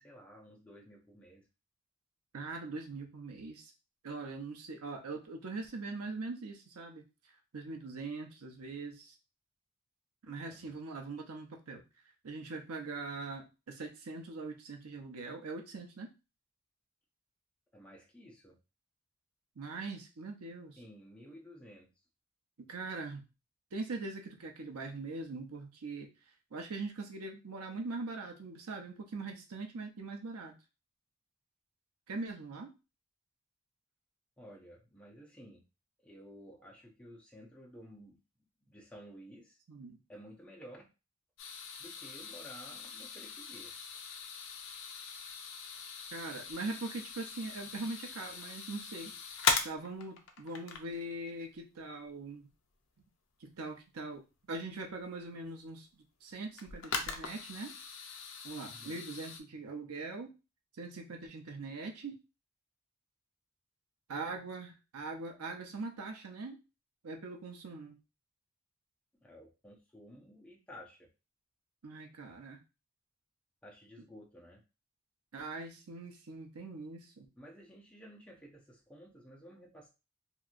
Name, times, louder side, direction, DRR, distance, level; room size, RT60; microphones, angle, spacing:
voice 1, 0.0-1.5 10.2-10.8 17.7-18.6 20.8-21.9 34.4-35.6 36.0-38.2 38.6-39.6 40.1-40.9 41.8-43.7 58.7-59.0 69.2-71.1 73.6-74.6 77.4-79.9, equal, 5° left, -2 dB, 0.7 m, -53 dB
voice 2, 2.3-3.7 4.0-7.0 7.5-9.2 10.2-11.8 12.2-16.1 19.6-20.8 22.7-23.2 23.7-26.1 26.5-30.6 32.1-32.7 39.7-40.0 46.1-52.5 53.4-54.2 54.5-57.7 58.4-60.3 60.7-62.2 64.1-66.6 67.0-68.0 71.8-72.6 75.3-77.3, right 3 dB, 85° right, 3 dB, 0.7 m, -42 dB
sound 1, 41.4-50.9 54.3-54.4 56.6-59.4, left 5 dB, 55° left, 0.5 m, -39 dB
2.9 x 2.7 x 2.5 m, 0.29 s
head